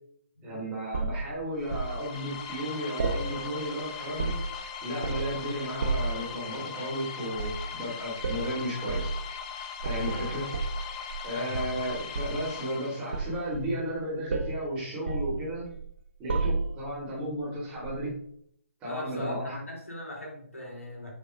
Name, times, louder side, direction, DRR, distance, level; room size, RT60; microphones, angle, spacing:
voice 1, 0.4-4.3 4.8-9.1 9.8-10.5 11.2-15.7 16.2-18.1 18.8-19.6, equal, 15° right, -6 dB, 3.3 m, -34 dB
sound 1, 0.9-1.9 3.0-3.7 4.0-4.6 5.0-5.4 5.8-6.2 7.3-7.6 8.2-8.5 8.9-9.1 9.8-11.3 11.5-12.5 13.1-14.0 14.3-14.6 15.1-15.9 16.3-16.9 17.8-18.0, right 3 dB, 55° right, 1.1 m, -31 dB
sound 2, 1.6-13.4, left 7 dB, 30° left, 0.7 m, -40 dB
voice 2, 11.3-11.8 18.8-21.1, left 1 dB, 75° left, -2 dB, 3.3 m, -39 dB
10.0 x 6.1 x 2.5 m, 0.67 s
figure-of-eight pair, 140°, 8 cm